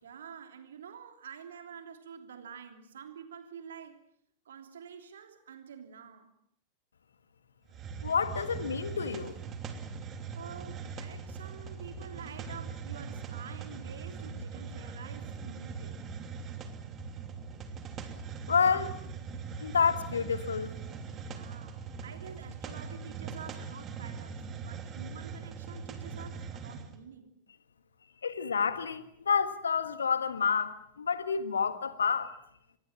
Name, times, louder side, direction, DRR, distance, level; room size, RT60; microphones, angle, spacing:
voice 1, 0.0-4.0 4.4-6.3 10.3-16.0 21.3-27.3, right 7 dB, 65° right, 3.1 m, -48 dB
Hiss, 7.7-26.9, right 5 dB, 30° right, 2.8 m, -41 dB
voice 2, 8.0-9.3 18.5-18.9 19.6-20.7 28.2-32.3, left 6 dB, 70° left, 1.6 m, -29 dB
25.5 x 21.0 x 7.3 m
figure-of-eight pair, 90°, 0 cm